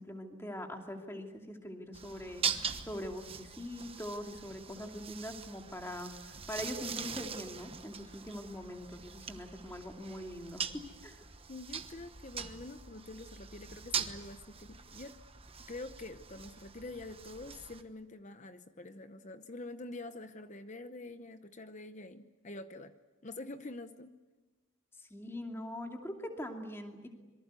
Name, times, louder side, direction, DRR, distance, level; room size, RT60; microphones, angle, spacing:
voice 1, 0.0-11.2 25.0-27.1, left 1 dB, 10° left, 2 dB, 2.6 m, -43 dB
sound 1, 1.9-17.8, right 6 dB, 25° right, 1.1 m, -42 dB
voice 2, 11.5-15.2 15.7-22.9 23.2-24.1, left 2 dB, 35° left, 9 dB, 0.8 m, -46 dB
26.5 x 23.5 x 8.3 m, 1.2 s
head